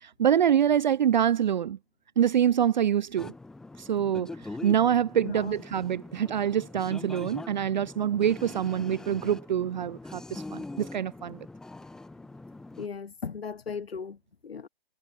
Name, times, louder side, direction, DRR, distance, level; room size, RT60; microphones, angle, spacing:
voice 1, 0.0-1.8 2.2-3.3 3.8-4.3 4.6-11.5, right 9 dB, 50° right, 0.5 m, -25 dB
sound 1, 3.2-12.9, left 2 dB, ahead, 0.6 m, -43 dB
voice 2, 5.2-5.6 12.8-14.2 14.4-14.7, left 6 dB, 75° left, 0.9 m, -37 dB
figure-of-eight pair, 125°, 31 cm